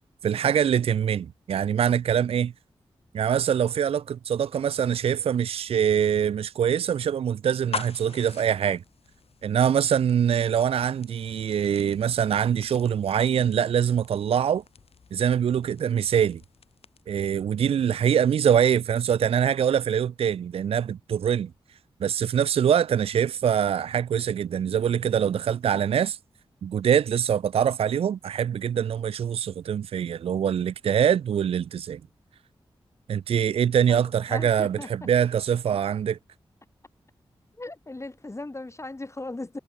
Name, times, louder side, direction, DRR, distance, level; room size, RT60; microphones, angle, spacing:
voice 1, 0.2-2.5 3.1-8.8 9.4-14.6 15.1-16.4 17.1-21.5 22.0-26.2 26.6-32.0 33.1-36.2, right 8 dB, 70° right, 0.4 m, -24 dB
sound 1, 7.7-17.2, left 6 dB, 75° left, 5.9 m, -44 dB
voice 2, 33.9-34.9 37.6-39.6, left 2 dB, 30° left, 2.1 m, -37 dB
cardioid pair, 45°, 10 cm